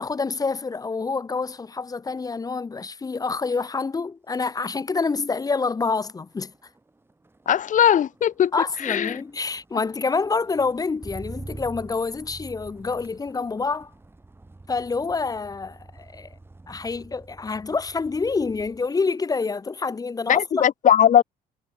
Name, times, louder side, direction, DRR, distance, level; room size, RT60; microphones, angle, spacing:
voice 1, 0.0-6.5 8.5-13.9 14.7-16.3 16.7-20.7, left 4 dB, 20° left, 0.9 m, -27 dB
Motor vehicle (road), 3.8-4.1 4.4-18.9 19.3-19.7, right 2 dB, 15° right, 6.3 m, -46 dB
voice 2, 7.4-8.5 8.8-9.2 20.3-21.2, left 9 dB, 50° left, 1.6 m, -19 dB
cardioid pair, 110°, 17 cm